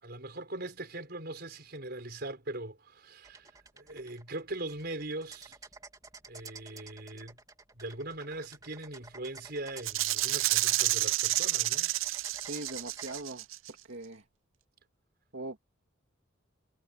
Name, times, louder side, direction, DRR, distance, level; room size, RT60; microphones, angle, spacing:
voice 1, 0.0-3.5 3.8-5.6 6.3-7.4 7.8-11.9, right 2 dB, 55° right, 5.0 m, -40 dB
sound 1, 3.2-13.2, right 4 dB, 20° right, 3.1 m, -51 dB
Rattle (instrument), 9.8-13.7, right 16 dB, 85° right, 0.5 m, -29 dB
voice 2, 12.5-14.2 15.3-15.6, right 2 dB, 70° right, 2.3 m, -41 dB
head